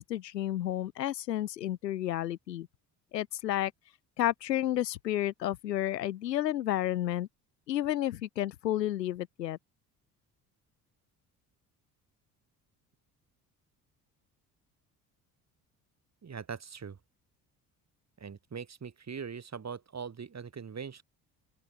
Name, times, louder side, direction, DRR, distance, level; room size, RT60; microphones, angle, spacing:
voice 1, 0.0-2.7 3.1-3.7 4.2-7.3 7.7-9.6, left 13 dB, 85° left, 0.8 m, -31 dB
voice 2, 16.2-17.0 18.2-21.0, right 6 dB, 35° right, 4.7 m, -41 dB
open air
figure-of-eight pair, 50°, 48 cm